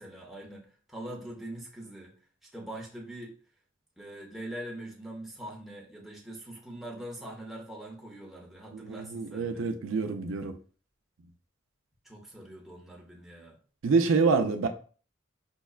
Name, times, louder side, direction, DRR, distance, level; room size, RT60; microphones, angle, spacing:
voice 1, 0.0-2.1 2.4-3.3 4.0-9.6 12.0-13.6, right 1 dB, ahead, 0.7 m, -43 dB
voice 2, 8.7-10.6 13.8-14.7, right 4 dB, 85° right, 0.4 m, -26 dB
5.3 x 2.2 x 2.3 m
head